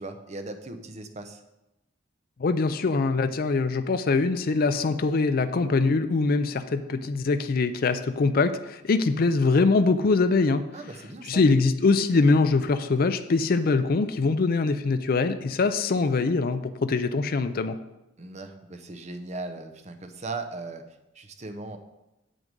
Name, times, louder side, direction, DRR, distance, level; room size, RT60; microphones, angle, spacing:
voice 1, 0.0-1.4 10.7-11.5 18.2-20.8 21.1-21.8, right 3 dB, 35° right, 7 dB, 0.7 m, -38 dB
voice 2, 2.4-10.6 11.3-17.8, left 3 dB, 45° left, 9 dB, 0.4 m, -23 dB
7.7 x 6.2 x 5.2 m, 0.95 s
head